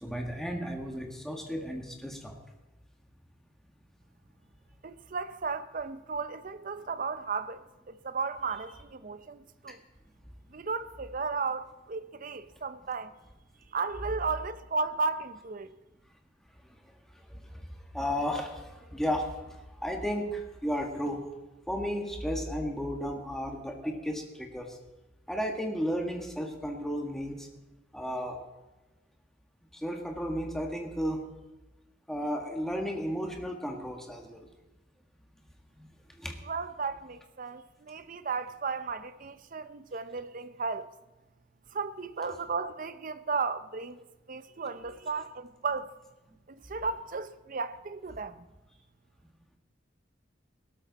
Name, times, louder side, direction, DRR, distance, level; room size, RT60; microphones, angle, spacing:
voice 1, 0.0-2.4 17.3-17.6 17.9-19.3 19.8-21.2 21.7-24.8 25.3-27.5 27.9-28.4 29.7-31.2 32.1-34.5 35.8-35.9 36.2-36.4, equal, ahead, 1.6 m, -33 dB
voice 2, 4.8-9.8 10.5-13.1 13.7-15.7 36.4-40.9 41.7-45.9 46.5-48.4, right 4 dB, 45° right, 0.6 m, -34 dB
18.0 x 12.5 x 4.1 m
head